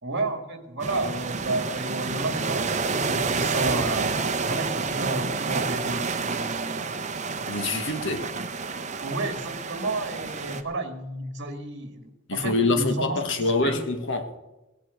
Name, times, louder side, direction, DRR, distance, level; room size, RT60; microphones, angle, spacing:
voice 1, 0.0-4.2 4.5-6.9 9.0-13.8, right 2 dB, 55° right, 2.0 m, -31 dB
sound 1, 0.8-10.6, right 4 dB, 35° right, 0.9 m, -29 dB
voice 2, 7.5-8.3 12.3-14.3, left 3 dB, 60° left, 1.5 m, -25 dB
17.5 x 8.0 x 8.3 m
head